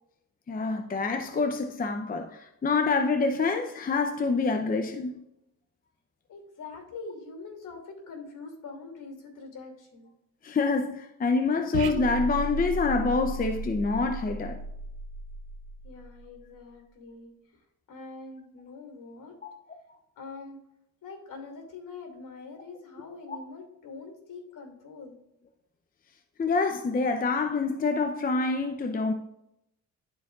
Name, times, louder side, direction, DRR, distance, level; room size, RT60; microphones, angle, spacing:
voice 1, 0.5-5.2 10.4-14.6 19.4-19.5 26.4-29.1, left 4 dB, 25° left, 0.6 m, -26 dB
voice 2, 6.3-10.1 15.8-17.3 17.9-19.3 20.2-20.6 21.0-25.2, left 4 dB, 60° left, 2.7 m, -44 dB
sound 1, 11.7-16.4, right 2 dB, 90° right, 0.8 m, -35 dB
12.0 x 4.6 x 2.5 m
cardioid pair, 80°, 35 cm